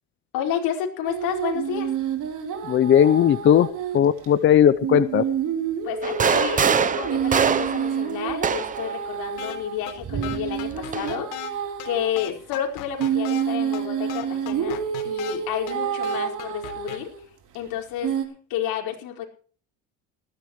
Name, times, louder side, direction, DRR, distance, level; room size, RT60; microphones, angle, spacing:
voice 1, 0.3-1.9 5.8-17.1 17.5-18.1 18.5-19.2, left 9 dB, 70° left, 1 dB, 4.9 m, -30 dB
sound 1, 1.0-4.0 4.2-4.3 4.8-12.1 13.0-17.2 18.0-18.2, right 8 dB, 55° right, 3.6 m, -29 dB
voice 2, 2.6-3.7 3.9-5.2, left 9 dB, 30° left, 13 dB, 0.6 m, -17 dB
sound 2, 6.0-8.9 10.0-11.1, right 6 dB, 20° right, 0.7 m, -24 dB
sound 3, 9.4-9.6 9.9-10.0 10.2-11.5 11.8-11.9 12.2-13.4 13.7-13.8 14.1-15.4 15.7-15.8 16.0-17.0, left 14 dB, 85° left, 3.7 m, -36 dB
19.0 x 15.5 x 3.1 m, 0.42 s
cardioid pair, 155°, 37 cm